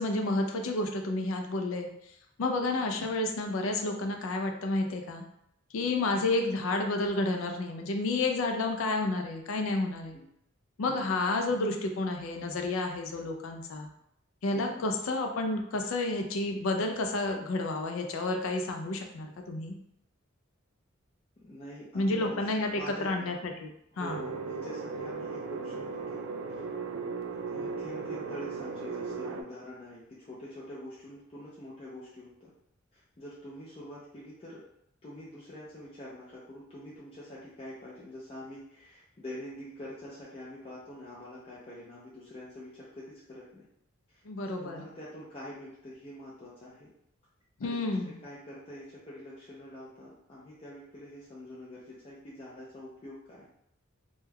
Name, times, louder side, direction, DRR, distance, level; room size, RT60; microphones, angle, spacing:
voice 1, 0.0-1.9 2.4-5.2 5.7-10.2 10.8-13.9 14.4-19.7 21.9-22.7 23.0-23.3 23.6-23.7 24.0-24.2 44.3-44.9 47.6-48.1, left 2 dB, 85° left, 4 dB, 0.4 m, -30 dB
voice 2, 2.4-2.9 5.9-6.1 10.1-10.2 10.8-11.1 14.5-14.8 21.4-23.4 23.9-26.2 26.5-26.6 27.5-32.5 32.9-34.6 35.0-43.7 44.1-46.9 47.6-53.5, left 1 dB, 30° left, -7 dB, 0.5 m, -46 dB
sound 1, 24.1-29.4, right 4 dB, 75° right, 0.3 m, -37 dB
2.2 x 2.2 x 3.3 m, 0.75 s
head